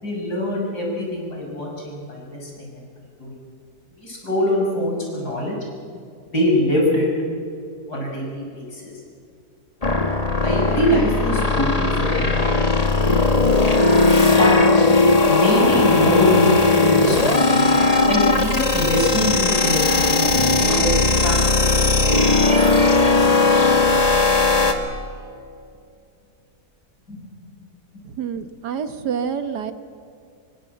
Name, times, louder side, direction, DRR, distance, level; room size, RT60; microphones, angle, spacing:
voice 1, 0.0-2.8 3.2-3.4 4.0-5.6 6.3-7.1 7.9-8.9 10.4-12.3 14.4-14.6 15.3-17.7 18.1-21.4 21.7-22.4 23.1-23.9 27.1-27.3, left 1 dB, 75° left, -2 dB, 7.0 m, -24 dB
sound 1, 9.8-24.7, left 3 dB, 25° left, 1.9 m, -17 dB
voice 2, 28.0-29.7, right 7 dB, 85° right, 10 dB, 1.9 m, -27 dB
25.0 x 24.0 x 8.1 m, 2.4 s
omnidirectional pair, 1.7 m